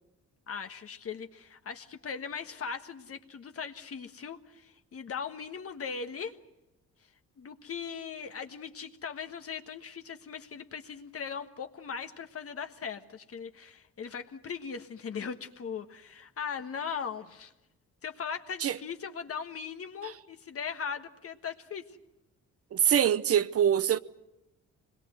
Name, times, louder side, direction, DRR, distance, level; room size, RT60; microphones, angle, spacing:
voice 1, 0.5-6.4 7.4-17.5 18.0-21.8, left 6 dB, 50° left, 1.5 m, -39 dB
voice 2, 22.7-24.0, right 9 dB, 50° right, 0.9 m, -24 dB
25.5 x 21.5 x 7.8 m
cardioid pair, 90°, 30 cm